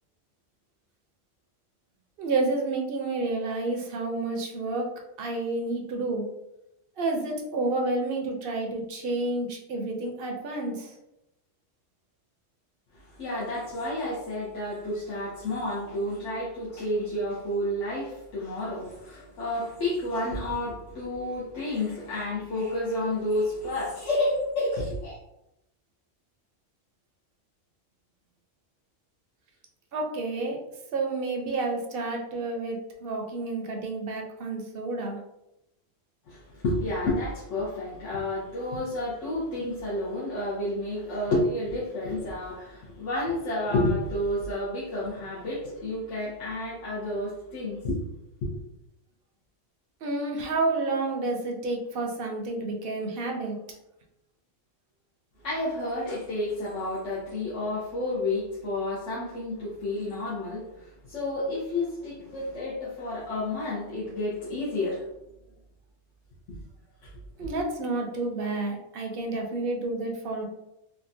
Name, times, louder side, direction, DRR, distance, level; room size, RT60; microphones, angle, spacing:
voice 1, 2.2-4.9 5.2-6.2 7.0-10.9 29.9-30.6 30.9-35.2 50.0-53.6 67.4-70.5, right 2 dB, 60° right, 1 dB, 0.7 m, -30 dB
voice 2, 12.9-25.2 36.3-48.0 48.4-48.5 55.4-65.1 67.0-67.1 67.4-67.5, left 1 dB, 75° left, -8 dB, 1.2 m, -30 dB
3.7 x 2.2 x 2.6 m, 0.87 s
omnidirectional pair, 1.3 m